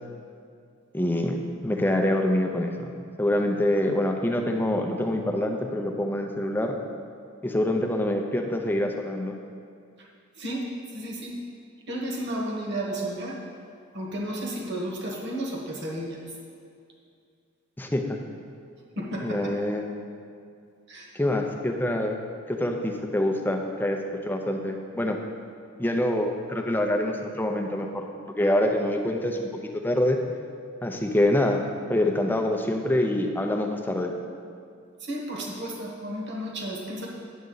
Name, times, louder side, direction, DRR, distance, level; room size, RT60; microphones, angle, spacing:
voice 1, 0.9-1.4 1.6-2.9 3.2-6.7 7.4-9.4 17.8-18.2 19.2-19.9 21.1-22.2 22.5-24.0 24.2-25.2 25.8-28.1 28.4-30.2 30.8-31.6 31.9-34.1, left 1 dB, 10° left, 3 dB, 0.6 m, -25 dB
voice 2, 10.9-11.3 11.9-13.4 13.9-16.2 19.0-19.5 20.9-21.1 35.1-37.1, right 1 dB, 55° right, -1 dB, 1.4 m, -32 dB
9.4 x 7.6 x 3.9 m, 2.3 s
head